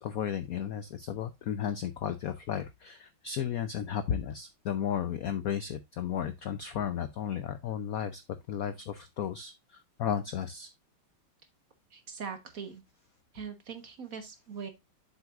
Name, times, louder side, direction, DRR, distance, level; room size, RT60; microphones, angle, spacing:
voice 1, 0.0-8.2 8.5-10.7, left 9 dB, 75° left, 0.8 m, -34 dB
voice 2, 11.9-12.8 13.3-14.7, right 6 dB, 45° right, 1.4 m, -41 dB
7.8 x 7.1 x 2.4 m
omnidirectional pair, 2.3 m